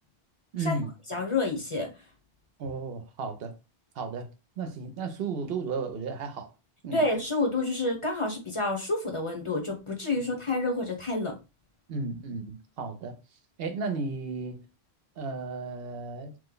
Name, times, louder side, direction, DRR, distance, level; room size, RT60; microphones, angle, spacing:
voice 1, 0.5-0.9 2.6-3.6 4.0-6.5 6.8-7.0 11.9-13.2 13.6-14.6 15.2-16.4, right 4 dB, 70° right, 0.8 m, -34 dB
voice 2, 1.1-1.9 6.9-11.3, left 2 dB, 35° left, 0.7 m, -29 dB
3.0 x 2.1 x 3.7 m
omnidirectional pair, 1.1 m